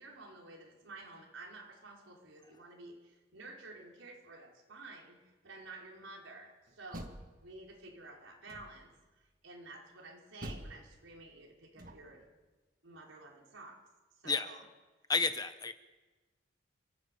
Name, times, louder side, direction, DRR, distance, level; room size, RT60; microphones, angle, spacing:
voice 1, 0.0-5.2 5.4-7.1 7.4-8.9 9.4-12.2 12.8-13.8 14.2-14.6, right 2 dB, 85° right, -1 dB, 5.3 m, -51 dB
Door, 6.7-7.9 8.5-9.0 10.4-12.3, right 1 dB, 45° right, 1.8 m, -48 dB
voice 2, 15.1-15.7, left 4 dB, 20° left, 10 dB, 1.0 m, -31 dB
28.5 x 14.5 x 8.6 m, 1.3 s
head